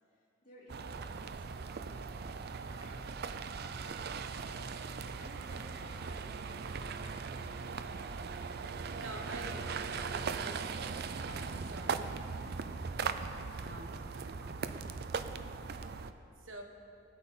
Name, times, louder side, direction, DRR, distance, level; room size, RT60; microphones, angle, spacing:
voice 1, 0.1-2.9 3.5-8.0 14.0-14.1 14.3-14.7 15.2-15.6, equal, 45° left, -6 dB, 3.6 m, -59 dB
sound 1, 0.7-16.1, right 5 dB, 55° right, 0.5 m, -39 dB
sound 2, 2.6-15.3, equal, 20° right, 1.8 m, -60 dB
voice 2, 8.9-10.6 11.2-12.7 13.6-14.4 16.4-16.6, right 1 dB, 90° right, 2 dB, 1.4 m, -48 dB
19.0 x 8.2 x 4.3 m, 2.6 s
head